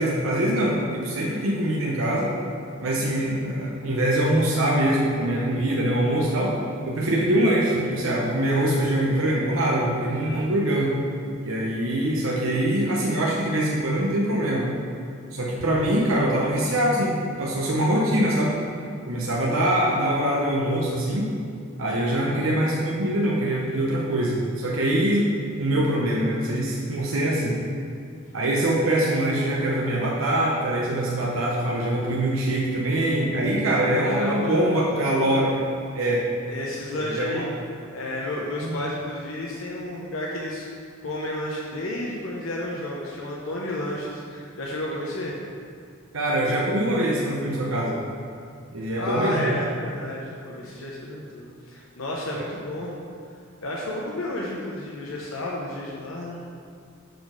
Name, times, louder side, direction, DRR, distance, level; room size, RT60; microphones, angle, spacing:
voice 1, 0.0-2.4 2.8-6.6 6.9-10.9 11.4-14.7 15.3-18.5 19.1-21.3 21.8-25.3 25.6-27.5 28.3-35.7 35.9-36.2 37.0-37.5 38.6-38.8 46.1-48.0 48.7-49.5 52.3-52.4, right 1 dB, 80° right, -4 dB, 0.9 m, -23 dB
voice 2, 33.9-35.4 36.5-37.5 37.9-40.6 41.0-45.3 49.0-52.9 53.6-56.4, left 1 dB, 80° left, -4 dB, 0.9 m, -31 dB
6.7 x 4.1 x 6.5 m, 2.3 s
head